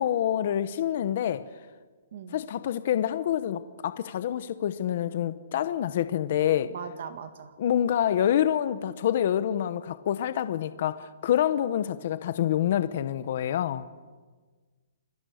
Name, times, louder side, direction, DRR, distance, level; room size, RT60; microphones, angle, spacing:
voice 1, 0.0-1.4 2.3-6.7 7.6-13.8, left 10 dB, 35° left, 12 dB, 0.9 m, -27 dB
voice 2, 6.7-7.5, right 7 dB, 45° right, 9 dB, 1.8 m, -39 dB
28.0 x 22.5 x 6.5 m, 1.4 s
hypercardioid pair, 180°, 0 cm